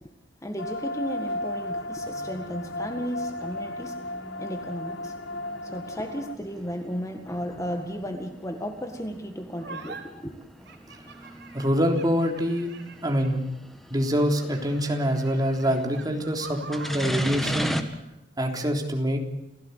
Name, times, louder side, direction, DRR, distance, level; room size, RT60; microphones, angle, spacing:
voice 1, 0.4-4.0 4.4-5.1 5.6-10.3, equal, 20° left, 6 dB, 1.8 m, -34 dB
sound 1, 0.6-6.4, left 1 dB, 90° left, 1.3 m, -34 dB
sound 2, 1.0-17.8, equal, ahead, 1.8 m, -39 dB
sound 3, 9.6-10.0 10.6-13.5 14.1-17.3, right 4 dB, 65° right, 4.4 m, -44 dB
voice 2, 11.5-12.7 13.0-13.5 13.9-17.8 18.4-19.2, equal, 20° right, 3 dB, 3.6 m, -25 dB
29.0 x 16.5 x 8.2 m, 0.92 s
head